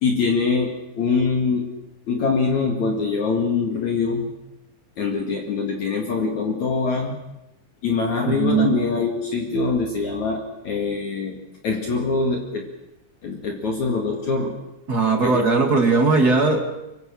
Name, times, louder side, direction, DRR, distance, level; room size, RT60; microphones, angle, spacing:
voice 1, 0.0-1.7 2.1-4.3 5.0-7.1 7.8-11.4 11.6-12.7 13.2-14.6 15.2-15.5, left 4 dB, 55° left, 2 dB, 3.2 m, -23 dB
voice 2, 8.2-8.7 14.9-16.7, right 3 dB, 30° right, 4 dB, 2.6 m, -19 dB
24.5 x 24.5 x 6.5 m, 0.91 s
omnidirectional pair, 4.4 m